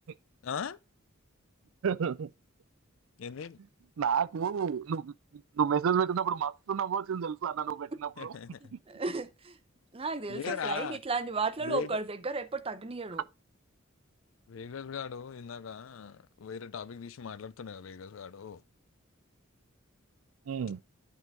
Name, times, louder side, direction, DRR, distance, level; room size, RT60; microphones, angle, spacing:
voice 1, 0.4-0.8 3.2-3.6 8.2-8.6 10.3-11.0 11.6-11.9 14.5-18.6, left 7 dB, 70° left, 0.4 m, -39 dB
voice 2, 1.8-2.3 4.0-5.1 5.6-7.9 20.5-20.8, right 7 dB, 75° right, 0.4 m, -30 dB
voice 3, 8.6-9.6 9.9-13.3, right 3 dB, 30° right, 0.6 m, -34 dB
10.5 x 3.9 x 4.5 m
head